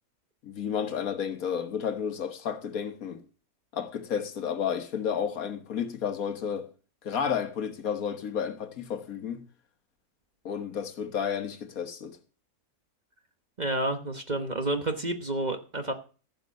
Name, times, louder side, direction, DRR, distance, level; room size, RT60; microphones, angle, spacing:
voice 1, 0.4-3.2 3.7-6.7 7.0-9.4 10.4-12.2, left 7 dB, 70° left, 1.6 m, -31 dB
voice 2, 13.6-15.9, right 2 dB, 30° right, 1.1 m, -30 dB
14.5 x 6.6 x 6.3 m
omnidirectional pair, 1.6 m